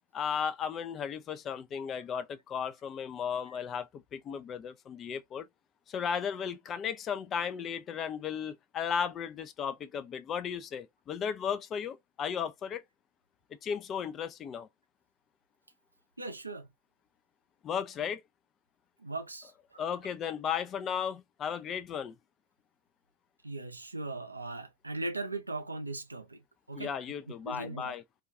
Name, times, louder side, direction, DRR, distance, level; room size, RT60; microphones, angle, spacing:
voice 1, 0.1-5.5 5.9-12.8 13.5-14.7 17.6-18.2 19.8-22.2 26.8-28.0, left 7 dB, 30° left, 0.3 m, -35 dB
voice 2, 16.2-16.7 19.0-19.9 23.4-27.1 27.4-27.9, right 2 dB, 80° right, 0.4 m, -39 dB
2.3 x 2.2 x 2.4 m
figure-of-eight pair, 90°, 0 cm